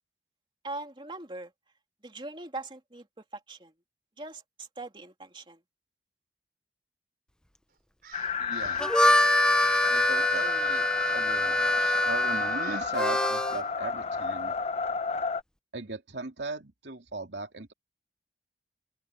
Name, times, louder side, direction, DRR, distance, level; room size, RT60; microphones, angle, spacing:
voice 1, 0.6-1.5 2.0-3.1 3.3-3.7 4.2-5.6, right 2 dB, 25° right, 2.8 m, -41 dB
Crow, 8.0-10.0 10.2-10.6 11.0-11.4 11.8-12.1 12.6-12.9, right 7 dB, 55° right, 5.0 m, -49 dB
sound 1, 8.1-15.4, left 5 dB, 35° left, 0.8 m, -32 dB
voice 2, 8.4-8.9 9.9-10.8 11.1-14.5 15.7-17.7, right 3 dB, 75° right, 2.6 m, -38 dB
Harmonica, 8.6-13.6, left 1 dB, 5° left, 0.7 m, -25 dB
open air
head